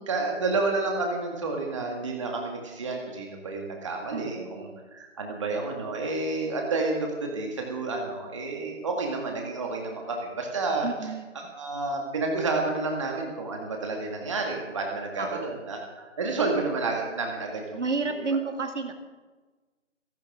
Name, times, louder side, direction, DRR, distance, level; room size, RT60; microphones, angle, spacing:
voice 1, 0.0-17.8, right 3 dB, 25° right, 1 dB, 2.0 m, -30 dB
voice 2, 4.1-4.9 10.8-11.5 15.2-15.4 17.7-18.9, right 4 dB, 65° right, 5 dB, 2.2 m, -31 dB
27.0 x 12.0 x 3.7 m, 1.2 s
figure-of-eight pair, 170°, 38 cm